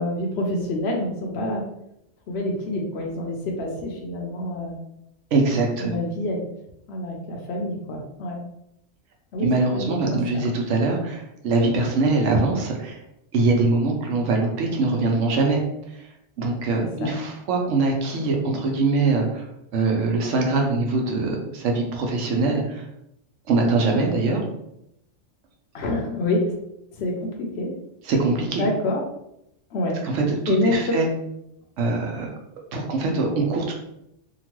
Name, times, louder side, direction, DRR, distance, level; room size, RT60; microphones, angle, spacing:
voice 1, 0.0-1.6 2.3-4.7 5.8-6.4 6.9-8.4 9.3-10.5 16.8-17.1 25.7-26.4 27.0-27.7 28.6-29.0 29.7-29.9 30.5-31.0, left 1 dB, 65° left, 0 dB, 0.8 m, -27 dB
voice 2, 5.3-6.0 9.4-13.0 13.3-15.6 16.4-19.5 19.7-22.8 23.5-24.4 28.0-28.7 30.0-31.1 31.8-32.3 32.7-33.7, right 3 dB, 75° right, 1 dB, 0.9 m, -22 dB
2.9 x 2.3 x 2.9 m, 0.82 s
omnidirectional pair, 1.3 m